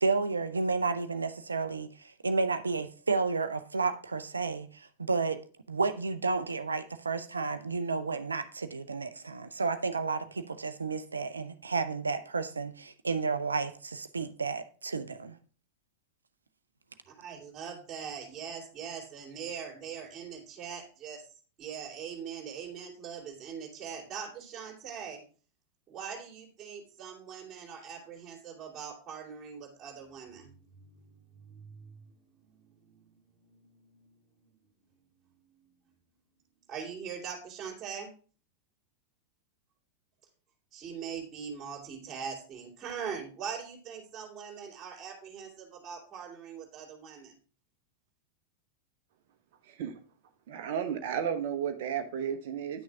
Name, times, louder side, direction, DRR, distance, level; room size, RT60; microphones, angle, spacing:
voice 1, 0.0-15.4, right 4 dB, 75° right, 0.6 m, -31 dB
voice 2, 17.1-21.2 21.6-25.2 25.9-31.0 31.3-32.1 32.5-34.2 36.7-38.1 40.7-47.3, right 7 dB, 20° right, 3.2 m, -42 dB
voice 3, 49.6-50.0 50.5-52.8, right 8 dB, 50° right, 1.0 m, -33 dB
9.9 x 6.3 x 3.5 m
figure-of-eight pair, 90°, 0 cm